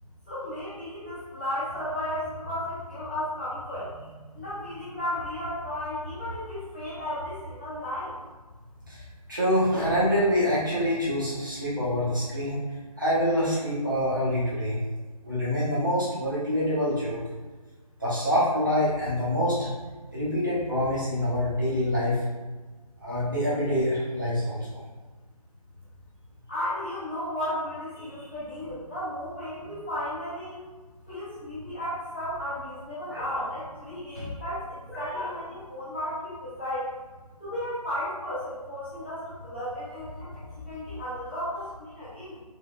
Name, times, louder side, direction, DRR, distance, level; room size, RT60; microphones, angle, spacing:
voice 1, 0.3-3.9 4.3-8.1 26.5-30.6 31.1-36.9 37.4-42.4, left 1 dB, 15° left, -14 dB, 0.9 m, -34 dB
voice 2, 9.3-12.6 13.0-14.8 15.2-17.2 18.0-19.7 20.1-22.2 23.0-24.8 28.0-28.1 33.1-33.3 34.1-34.3 34.9-35.3, equal, 30° right, -9 dB, 1.0 m, -26 dB
3.5 x 3.5 x 2.3 m, 1.3 s
figure-of-eight pair, 180°, 20 cm